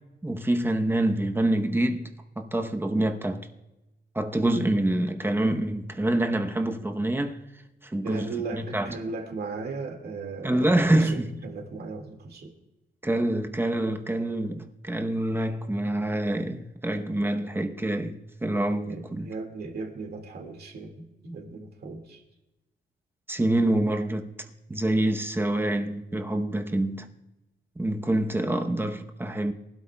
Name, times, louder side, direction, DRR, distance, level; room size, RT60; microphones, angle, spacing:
voice 1, 0.2-2.1 2.4-3.5 4.1-7.4 7.8-9.0 10.4-11.3 13.0-19.3 23.3-24.3 24.7-27.1 27.8-29.5, right 1 dB, 10° right, 0.9 m, -26 dB
voice 2, 8.0-12.5 18.9-22.2, right 4 dB, 60° right, 2.0 m, -37 dB
23.5 x 12.5 x 2.3 m
wide cardioid pair, 130°, 18 cm